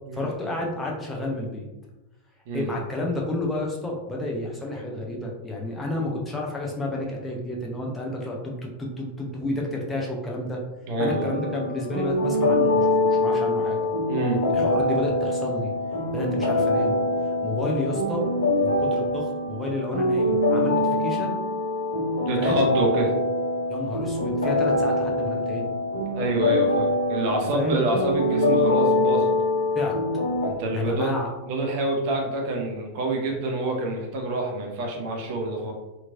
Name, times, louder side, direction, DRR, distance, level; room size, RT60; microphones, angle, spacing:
voice 1, 0.1-1.7 2.5-10.6 11.0-13.8 14.5-15.7 16.1-17.0 17.4-18.2 18.6-21.4 22.4-22.6 23.7-25.7 27.3-27.8 29.7-30.0 30.7-31.3, left 1 dB, 10° left, -2 dB, 0.6 m, -30 dB
sound 1, 10.9-30.5, left 2 dB, 80° left, 0.7 m, -24 dB
voice 2, 10.9-11.3 14.1-14.4 22.3-23.1 26.1-29.3 30.4-31.1 31.4-35.7, right 2 dB, 45° right, 0 dB, 0.6 m, -27 dB
2.9 x 2.7 x 2.5 m, 1.1 s
figure-of-eight pair, 90°, 0 cm